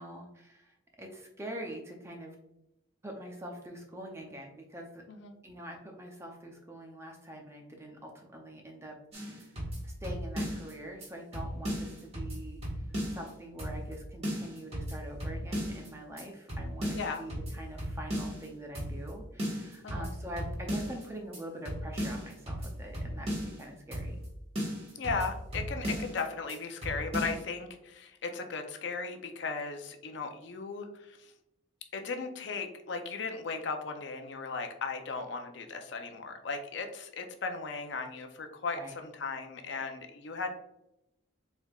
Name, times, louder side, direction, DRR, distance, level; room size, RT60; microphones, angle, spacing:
voice 1, 0.0-2.4 3.0-5.0 5.4-9.5 9.8-12.6 13.1-24.3 38.8-38.9 39.7-39.8, right 1 dB, 15° right, 1 dB, 0.5 m, -44 dB
sound 1, 9.1-10.7 11.0-11.1 11.3-13.3 13.6-14.0 14.2-15.9 16.2-16.3 16.5-18.5 18.7-19.1 19.4-21.0 21.3-21.4 21.6-23.6 23.9-24.3 24.5-26.2 26.5-26.6 26.8-27.4, equal, 30° right, 1.4 m, -36 dB
voice 2, 16.9-17.2 19.8-20.1 25.0-31.3 31.9-40.5, left 4 dB, 60° left, 5 dB, 0.5 m, -37 dB
4.5 x 3.4 x 2.3 m, 0.86 s
head